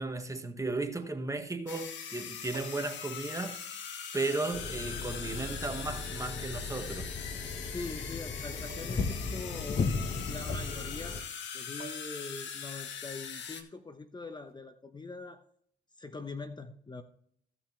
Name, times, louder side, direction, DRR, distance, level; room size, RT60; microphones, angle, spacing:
voice 1, 0.0-3.6 4.1-7.1, right 3 dB, 15° right, 1.6 m, -35 dB
sound 1, 1.7-13.6, left 7 dB, 65° left, 1.7 m, -41 dB
sound 2, 2.5-3.1 4.4-4.5 5.7-6.2 8.7-9.1 9.4-9.5 11.4-11.5 11.8-12.4 14.3-14.6, right 11 dB, 50° right, 1.8 m, -50 dB
sound 3, 4.5-11.2, left 4 dB, 45° left, 1.2 m, -36 dB
voice 2, 7.7-10.0 10.3-11.2 11.5-15.4 16.0-17.0, left 3 dB, 20° left, 1.0 m, -43 dB
16.0 x 5.8 x 3.4 m
supercardioid pair, 65°, 20 cm